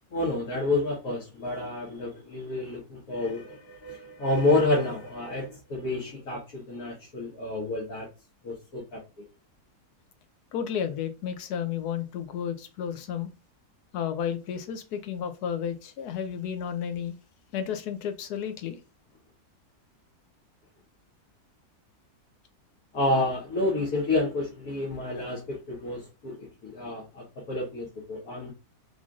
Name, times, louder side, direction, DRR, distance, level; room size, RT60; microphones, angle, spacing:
voice 1, 0.1-8.1 8.4-9.0 22.9-28.5, left 2 dB, 65° left, 1.5 m, -29 dB
voice 2, 10.5-13.3 13.9-17.1 17.5-18.8, left 8 dB, 85° left, 1.2 m, -32 dB
3.8 x 3.2 x 2.4 m
omnidirectional pair, 1.6 m